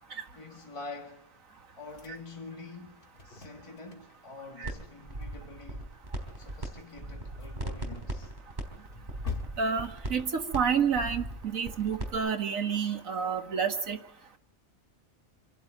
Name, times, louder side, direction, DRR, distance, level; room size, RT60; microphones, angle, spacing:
voice 1, 0.3-1.3 1.8-5.9 6.4-8.3, left 3 dB, 25° left, 1.9 m, -46 dB
sound 1, 1.9-4.4 4.7-5.0 5.2-5.3 5.6-5.7 6.4-7.8 8.2-10.6, left 4 dB, 40° left, 1.7 m, -45 dB
sound 2, 4.6-4.8 5.1-6.7 6.9-12.1, right 1 dB, 35° right, 4.0 m, -37 dB
voice 2, 9.6-14.0, right 6 dB, 85° right, 2.0 m, -29 dB
26.5 x 11.5 x 8.7 m
omnidirectional pair, 1.4 m